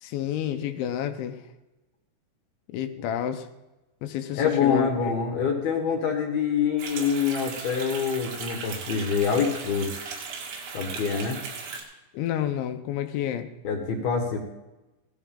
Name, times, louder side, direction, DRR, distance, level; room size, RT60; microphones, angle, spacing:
voice 1, 0.0-1.4 2.7-3.5 4.0-5.1 12.1-13.5, left 10 dB, 90° left, 6 dB, 3.2 m, -29 dB
voice 2, 4.3-9.9 10.7-11.4 13.6-14.4, left 6 dB, 65° left, 1 dB, 3.2 m, -25 dB
sound 1, 6.8-11.8, right 5 dB, 85° right, 4.5 m, -37 dB
16.5 x 12.5 x 3.7 m, 1.0 s
omnidirectional pair, 5.2 m